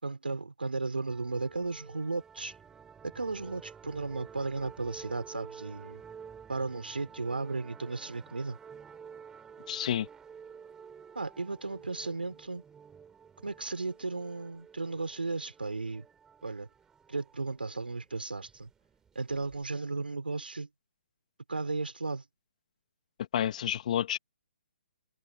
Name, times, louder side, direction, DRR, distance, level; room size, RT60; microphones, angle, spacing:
voice 1, 0.0-2.5 3.1-6.0 6.5-8.6 11.1-12.6 13.4-16.0 16.4-16.7 17.1-18.7 19.1-20.7 21.5-22.2, right 3 dB, 90° right, 4.5 m, -35 dB
sound 1, 1.1-19.8, right 7 dB, 10° right, 4.7 m, -52 dB
voice 2, 9.7-10.1 23.3-24.2, left 10 dB, 50° left, 3.1 m, -29 dB
hypercardioid pair, 140°, 5 cm